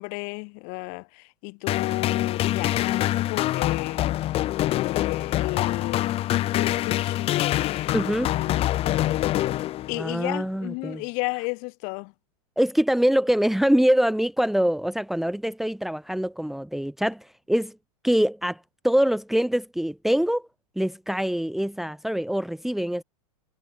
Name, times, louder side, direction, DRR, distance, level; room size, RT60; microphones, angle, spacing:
voice 1, 0.0-4.2 4.6-8.0 8.3-9.4 9.9-12.1, left 36 dB, 45° left, 4.4 m, -33 dB
sound 1, 1.7-10.2, left 14 dB, 30° left, 1.3 m, -25 dB
voice 2, 7.9-8.3 10.0-11.0 12.6-17.7 18.0-18.6 18.8-20.4 20.8-23.0, equal, ahead, 1.5 m, -24 dB
hypercardioid pair, 125°, 19 cm